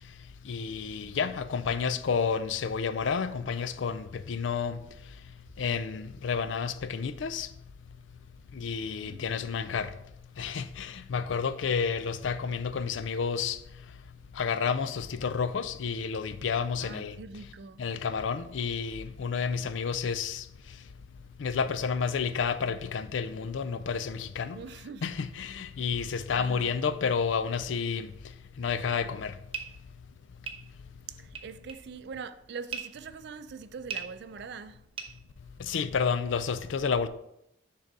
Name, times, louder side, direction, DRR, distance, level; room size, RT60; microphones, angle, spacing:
voice 1, 0.5-4.8 5.6-7.5 8.6-9.9 10.4-13.6 14.4-17.1 17.8-20.4 21.4-24.6 25.0-28.1 28.6-29.3 35.7-37.1, left 6 dB, 90° left, 0.4 m, -30 dB
voice 2, 8.8-9.2 16.8-17.9 24.5-25.1 26.3-26.8 31.1-34.9 35.6-35.7, right 5 dB, 60° right, 0.4 m, -43 dB
sound 1, 29.5-35.9, right 6 dB, 30° right, 0.7 m, -42 dB
6.5 x 3.8 x 4.7 m
head